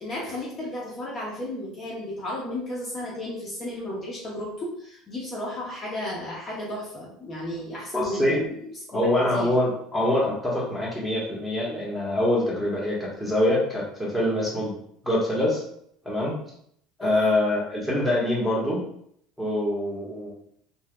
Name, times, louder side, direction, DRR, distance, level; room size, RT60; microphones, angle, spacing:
voice 1, 0.0-9.5 17.0-17.4, left 1 dB, 40° left, -4 dB, 0.9 m, -34 dB
voice 2, 7.9-8.4 8.9-14.7 15.0-15.6 16.0-16.3 17.0-18.8 19.4-20.3, left 1 dB, 5° left, -6 dB, 1.3 m, -24 dB
3.2 x 2.7 x 2.3 m, 0.67 s
supercardioid pair, 95°, 0 cm